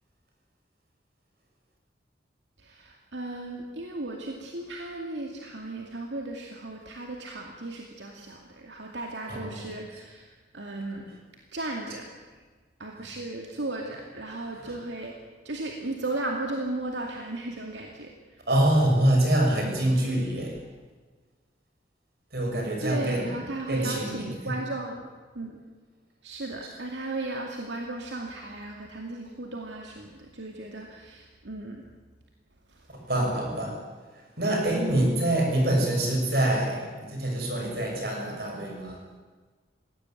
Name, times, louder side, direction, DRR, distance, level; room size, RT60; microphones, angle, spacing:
voice 1, 2.6-11.1 11.5-12.1 12.8-15.2 15.4-18.4 22.8-25.1 25.3-25.6 26.2-31.8 32.7-32.9, right 2 dB, 85° right, 1 dB, 2.3 m, -35 dB
voice 2, 9.3-9.7 14.6-14.7 18.5-20.6 22.3-23.3 23.7-24.5 32.9-33.8 34.4-39.0, right 1 dB, 55° right, 1 dB, 6.5 m, -25 dB
20.5 x 16.5 x 9.4 m, 1.4 s
head